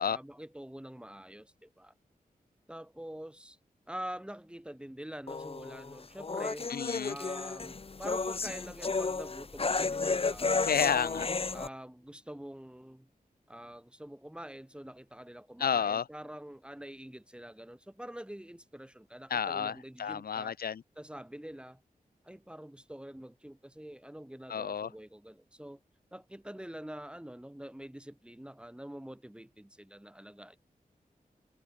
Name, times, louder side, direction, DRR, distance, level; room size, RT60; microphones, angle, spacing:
voice 1, 0.0-1.9 2.7-3.6 3.9-6.7 7.1-10.7 11.5-13.1 13.5-20.6 21.0-21.8 22.2-25.8 26.1-30.6, right 1 dB, 5° right, 5.7 m, -46 dB
sound 1, 5.3-11.7, left 4 dB, 40° left, 1.4 m, -33 dB
voice 2, 6.7-7.2 10.6-11.3 15.6-16.0 19.3-20.8 24.5-24.9, left 7 dB, 85° left, 0.8 m, -31 dB
wide cardioid pair, 130°, 15 cm